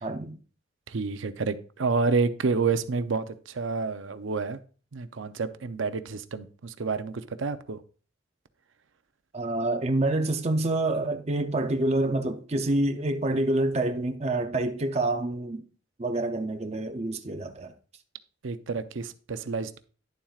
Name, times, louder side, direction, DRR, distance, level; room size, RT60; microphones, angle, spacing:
voice 1, 0.0-0.4 9.3-15.6 16.0-17.7, right 2 dB, 35° right, 0.6 m, -27 dB
voice 2, 0.9-4.6 4.9-7.8 18.4-19.8, right 4 dB, 85° right, 0.6 m, -29 dB
10.5 x 7.2 x 2.4 m
head